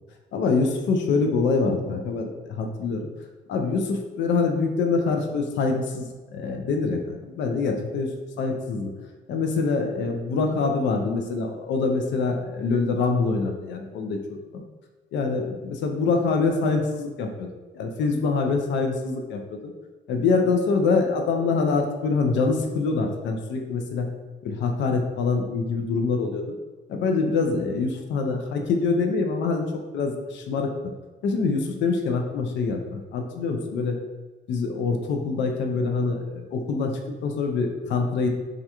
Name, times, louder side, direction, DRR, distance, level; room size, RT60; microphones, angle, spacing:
voice 1, 0.3-3.1 3.5-8.9 9.3-14.6 15.1-17.5 17.7-19.7 20.1-24.1 24.4-26.6 26.9-29.6 29.9-30.7 31.2-34.0 34.5-38.3, left 4 dB, 65° left, 3 dB, 0.4 m, -25 dB
2.4 x 2.2 x 2.8 m, 1.3 s
cardioid pair, 90°, 20 cm